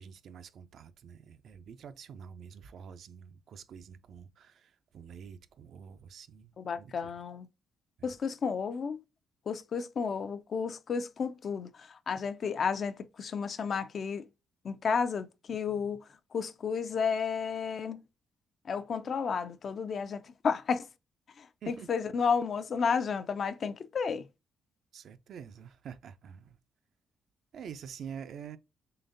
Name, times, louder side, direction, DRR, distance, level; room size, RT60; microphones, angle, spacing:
voice 1, 0.0-7.1 8.0-8.1 21.6-21.9 24.9-26.6 27.5-28.6, right 7 dB, 65° right, 0.4 m, -47 dB
voice 2, 6.6-7.5 8.0-9.0 9.5-14.3 14.6-18.0 18.6-20.9 21.4-24.3, left 6 dB, 50° left, 0.4 m, -32 dB
3.8 x 3.3 x 2.5 m
cardioid pair, 90°, 0 cm